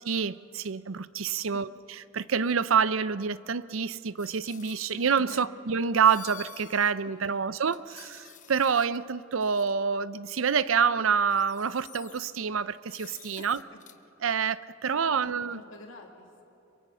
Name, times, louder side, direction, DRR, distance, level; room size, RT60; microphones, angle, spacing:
voice 1, 0.1-1.7 2.1-13.6 14.2-15.6, right 6 dB, 75° right, 0.6 m, -27 dB
sound 1, 4.2-5.4 6.0-6.9 7.3-7.4 7.7-9.0 9.4-9.7 10.8-10.9 11.2-12.4 12.9-14.0, left 10 dB, 40° left, 0.9 m, -50 dB
voice 2, 4.9-5.6 7.0-7.4 13.4-13.6 14.8-16.4, left 2 dB, 70° left, 2.6 m, -49 dB
26.5 x 23.5 x 5.7 m
head